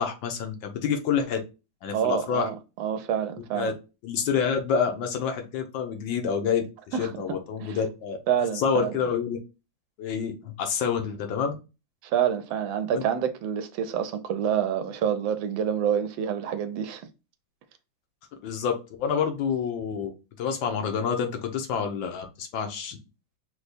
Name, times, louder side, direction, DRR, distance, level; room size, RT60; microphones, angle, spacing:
voice 1, 0.0-1.4 1.8-2.5 3.5-3.7 4.0-8.2 8.5-9.4 10.0-11.6 12.9-13.0 18.4-18.7 19.0-20.1 20.4-23.0, left 7 dB, 80° left, 1.6 m, -28 dB
voice 2, 1.9-3.7 6.9-7.1 7.6-7.8 8.3-8.9 12.0-17.0, right 9 dB, 80° right, 1.4 m, -27 dB
5.0 x 2.2 x 4.1 m
omnidirectional pair, 2.1 m